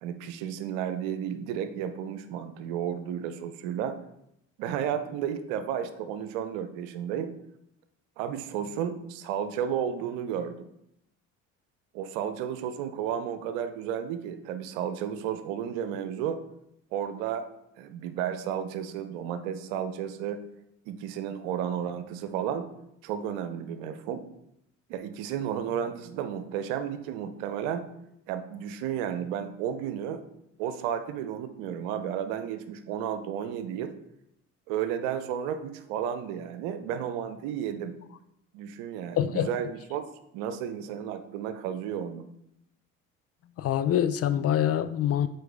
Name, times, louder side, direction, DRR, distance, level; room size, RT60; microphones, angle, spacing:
voice 1, 0.0-4.0 4.6-7.3 8.2-10.7 11.9-16.4 16.9-17.5 17.8-20.4 20.9-22.7 23.0-24.3 24.9-27.8 28.3-30.2 30.6-33.9 34.7-37.9 38.5-40.0 40.3-42.2, right 9 dB, 70° right, 10 dB, 0.7 m, -32 dB
voice 2, 39.2-39.5 43.6-45.3, left 10 dB, 40° left, 13 dB, 0.5 m, -25 dB
7.7 x 4.5 x 3.5 m, 0.79 s
hypercardioid pair, 55°, 38 cm